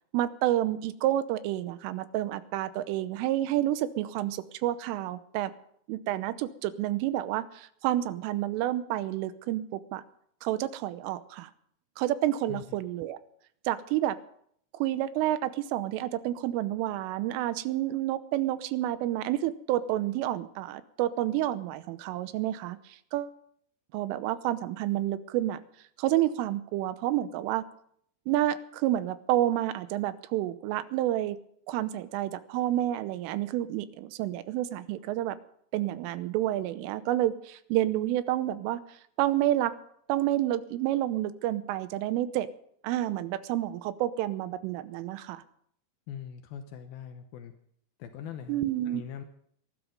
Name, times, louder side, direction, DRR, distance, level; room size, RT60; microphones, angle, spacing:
voice 1, 0.1-5.5 5.9-10.0 10.4-11.5 12.0-13.2 13.7-14.2 14.7-23.4 23.9-25.6 26.0-27.6 28.3-31.4 31.7-35.4 35.7-38.8 39.2-39.7 40.1-42.5 42.8-45.4 48.5-49.0, right 13 dB, 90° right, 14 dB, 3.4 m, -29 dB
voice 2, 46.1-47.5 48.0-49.2, left 8 dB, 85° left, 7 dB, 2.1 m, -42 dB
20.0 x 12.5 x 5.3 m, 0.65 s
omnidirectional pair, 5.6 m